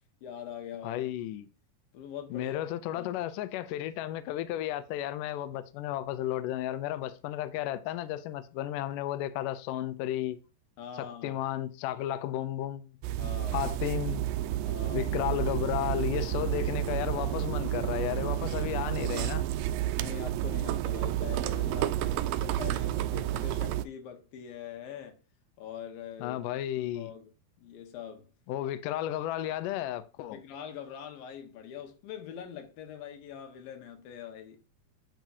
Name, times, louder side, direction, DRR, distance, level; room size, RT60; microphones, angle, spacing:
voice 1, 0.2-1.3 1.9-2.6 2.9-3.1 10.8-11.4 13.2-13.6 14.6-15.1 20.0-25.2 25.6-26.4 26.8-27.3 27.6-28.3 30.3-34.6, left 8 dB, 70° left, 3.0 m, -43 dB
voice 2, 0.8-1.5 2.3-10.4 11.0-12.9 13.5-14.2 14.9-19.4 26.2-27.1 28.5-30.4, left 13 dB, 85° left, 1.9 m, -33 dB
sound 1, 13.0-23.8, right 13 dB, 85° right, 2.0 m, -30 dB
9.0 x 6.0 x 2.7 m
omnidirectional pair, 4.5 m